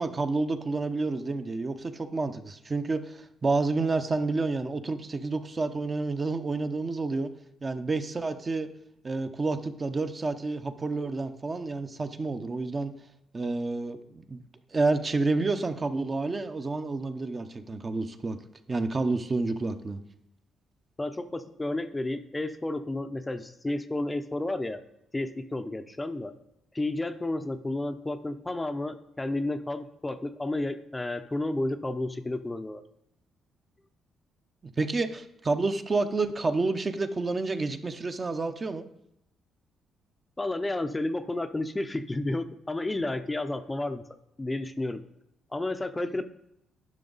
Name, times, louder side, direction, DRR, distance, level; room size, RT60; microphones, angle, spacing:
voice 1, 0.0-7.3 7.6-8.7 9.0-12.9 13.3-14.4 14.7-18.4 18.7-20.0 34.8-38.8, right 3 dB, 30° right, 8 dB, 0.7 m, -29 dB
voice 2, 21.0-24.8 25.1-26.3 26.7-32.8 40.4-44.0 44.4-45.0 45.5-46.2, left 2 dB, 15° left, 9 dB, 0.6 m, -31 dB
10.5 x 5.8 x 4.0 m, 0.79 s
cardioid pair, 90°, 0 cm